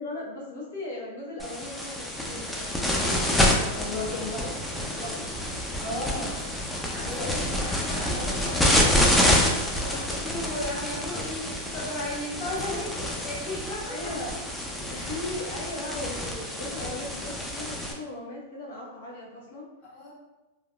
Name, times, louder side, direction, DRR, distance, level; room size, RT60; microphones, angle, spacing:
voice 1, 0.0-2.7 3.7-5.2 12.5-13.0 13.9-14.4 14.8-19.6, left 2 dB, 75° left, -3 dB, 1.0 m, -37 dB
sound 1, 1.4-17.9, left 1 dB, 5° left, 0.4 m, -27 dB
voice 2, 3.6-4.1 5.8-14.1 14.9-15.2 19.8-20.1, left 1 dB, 40° left, -8 dB, 1.5 m, -36 dB
3.4 x 2.3 x 2.3 m, 1.1 s
hypercardioid pair, 135°, 0 cm